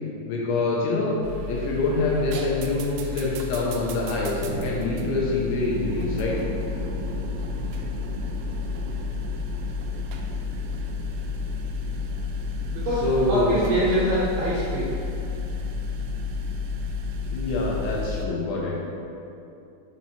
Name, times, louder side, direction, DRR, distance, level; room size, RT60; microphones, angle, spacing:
voice 1, 0.3-1.2 1.5-6.4 13.0-13.5 17.3-18.8, left 2 dB, 80° left, -3 dB, 2.9 m, -25 dB
sound 1, 1.2-18.3, left 3 dB, 90° right, 3.2 m, -31 dB
voice 2, 12.7-14.9, right 1 dB, 75° right, -9 dB, 2.4 m, -25 dB
7.3 x 4.4 x 4.1 m, 2.7 s
omnidirectional pair, 5.7 m